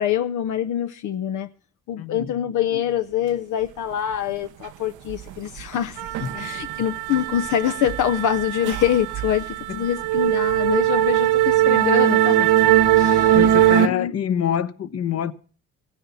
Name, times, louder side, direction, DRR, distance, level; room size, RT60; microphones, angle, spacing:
voice 1, 0.0-1.5 1.9-12.5 13.0-13.5 13.8-14.1, left 10 dB, 75° left, 0.7 m, -25 dB
voice 2, 2.0-2.3 6.2-6.5 9.7-9.8 13.0-15.3, left 9 dB, 55° left, 1.0 m, -26 dB
sound 1, 5.1-5.3 5.6-13.9, right 12 dB, 85° right, 0.7 m, -20 dB
16.0 x 10.0 x 7.0 m
cardioid pair, 90°, 30 cm